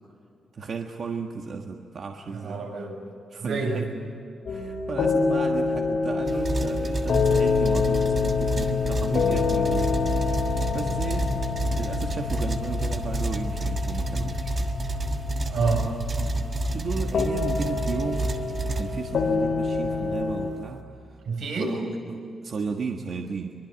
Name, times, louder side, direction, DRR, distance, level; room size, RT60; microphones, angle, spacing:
voice 1, 0.5-2.6 3.3-4.2 4.5-11.5 11.7-14.5 16.7-18.3 18.7-21.2 21.6-23.5, right 5 dB, 50° right, 3 dB, 1.5 m, -34 dB
voice 2, 2.3-3.0 3.4-3.9 15.5-15.9 21.3-21.8, right 4 dB, 80° right, 2 dB, 7.3 m, -28 dB
sound 1, 4.5-20.5, left 5 dB, 60° left, 2.9 m, -27 dB
sound 2, 6.2-19.4, right 2 dB, 30° right, 1.5 m, -29 dB
24.5 x 23.5 x 9.0 m, 2.7 s
wide cardioid pair, 165°, 0 cm